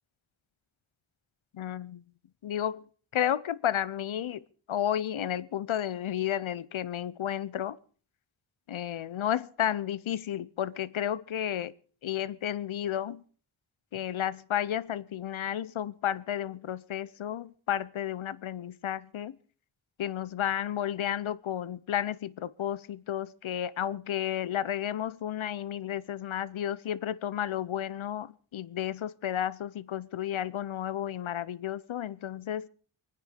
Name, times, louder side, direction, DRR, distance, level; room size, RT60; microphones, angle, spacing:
voice 1, 1.5-2.0 2.4-2.8 3.1-7.8 8.7-11.7 12.0-13.2 13.9-19.4 20.0-32.7, left 10 dB, 85° left, 0.8 m, -32 dB
24.0 x 9.6 x 5.2 m
cardioid pair, 60°, 47 cm